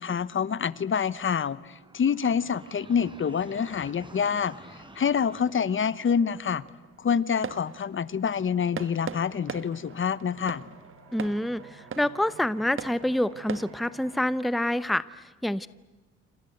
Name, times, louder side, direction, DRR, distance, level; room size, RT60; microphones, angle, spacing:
voice 1, 0.0-4.5 4.9-6.6 7.0-10.6, left 7 dB, 40° left, 18 dB, 1.1 m, -27 dB
sound 1, 1.5-6.4, right 1 dB, 15° right, 4.3 m, -50 dB
sound 2, 4.1-13.7, right 6 dB, 45° right, 1.7 m, -42 dB
sound 3, 5.8-14.3, right 4 dB, 60° right, 6.1 m, -54 dB
voice 2, 11.1-15.7, left 1 dB, ahead, 16 dB, 0.8 m, -27 dB
28.0 x 26.5 x 7.9 m, 1.2 s
cardioid pair, 90°, 30 cm